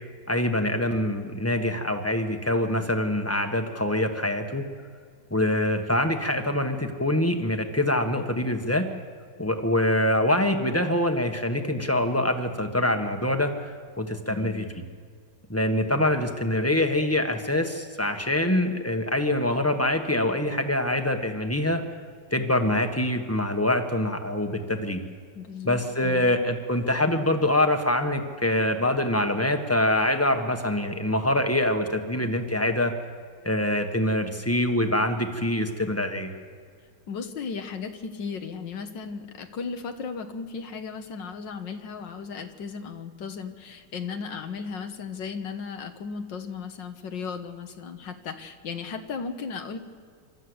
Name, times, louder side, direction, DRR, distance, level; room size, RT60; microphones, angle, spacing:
voice 1, 0.3-4.6 5.3-8.9 9.4-13.5 14.0-14.7 15.5-21.8 22.3-25.0 25.6-32.9 33.4-36.3, left 1 dB, 10° left, 5 dB, 1.2 m, -25 dB
voice 2, 14.3-14.7 25.4-26.3 37.1-49.8, left 5 dB, 85° left, 7 dB, 2.0 m, -36 dB
26.0 x 13.5 x 8.1 m, 2.1 s
omnidirectional pair, 1.9 m